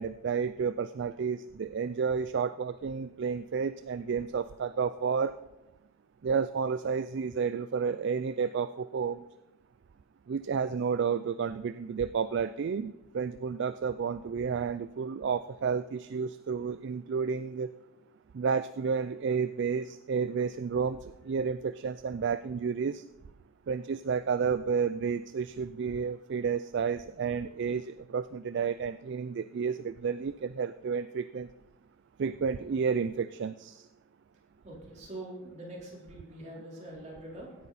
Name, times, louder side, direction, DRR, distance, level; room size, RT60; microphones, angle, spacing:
voice 1, 0.0-5.3 6.2-9.2 10.3-17.7 18.3-23.0 23.7-31.5 32.2-33.9, right 6 dB, 55° right, 13 dB, 0.3 m, -31 dB
voice 2, 34.6-37.6, right 1 dB, 35° right, -4 dB, 3.9 m, -44 dB
16.5 x 9.6 x 4.2 m, 0.98 s
head